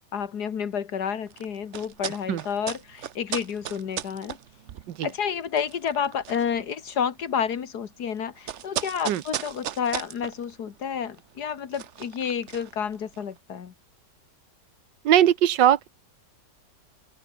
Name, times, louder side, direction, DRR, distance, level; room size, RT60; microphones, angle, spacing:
voice 1, 0.0-4.4 5.0-13.7, left 7 dB, 65° left, 2.0 m, -30 dB
sound 1, 1.2-13.4, right 10 dB, 55° right, 0.9 m, -38 dB
voice 2, 15.0-15.9, right 11 dB, 85° right, 1.6 m, -20 dB
open air
omnidirectional pair, 1.9 m